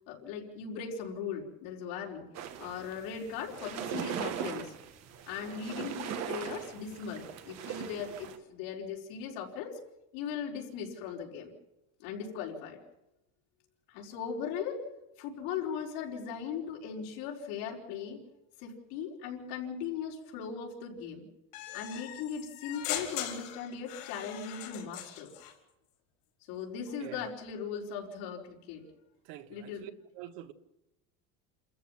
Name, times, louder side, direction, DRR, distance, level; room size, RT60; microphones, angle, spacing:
voice 1, 0.1-2.3 2.6-4.7 5.3-9.8 10.1-11.5 12.0-12.8 13.9-14.9 15.2-18.2 18.6-21.3 21.7-25.3 26.5-28.8 29.5-29.9, left 6 dB, 75° left, 4.9 m, -38 dB
sound 1, 2.3-8.4, right 9 dB, 40° right, 1.7 m, -40 dB
sound 2, 21.5-25.5, left 12 dB, 90° left, 4.5 m, -40 dB
voice 2, 27.0-27.3 29.2-30.5, right 12 dB, 75° right, 1.7 m, -46 dB
28.0 x 14.5 x 7.4 m
cardioid pair, 180°, 41 cm